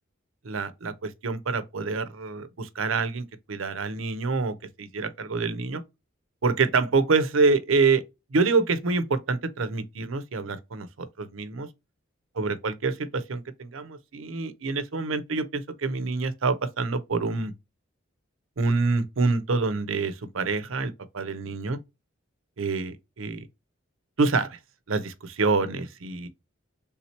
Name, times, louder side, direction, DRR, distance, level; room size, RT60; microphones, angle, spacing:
voice 1, 0.4-5.8 6.4-8.0 8.3-11.7 12.4-17.5 18.6-21.8 22.6-23.5 24.2-24.6 24.9-26.3, right 4 dB, 85° right, 0.6 m, -26 dB
3.6 x 2.9 x 4.2 m
head